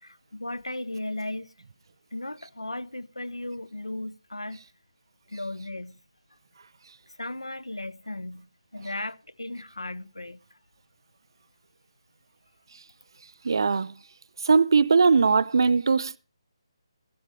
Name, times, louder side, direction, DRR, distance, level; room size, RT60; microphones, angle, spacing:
voice 1, 0.0-1.5 2.1-4.6 5.3-6.0 7.2-10.4, left 1 dB, 80° left, 0.8 m, -36 dB
voice 2, 13.4-13.9 14.4-16.2, right 4 dB, 50° right, 0.7 m, -20 dB
15.0 x 12.5 x 3.4 m
figure-of-eight pair, 145°, 3 cm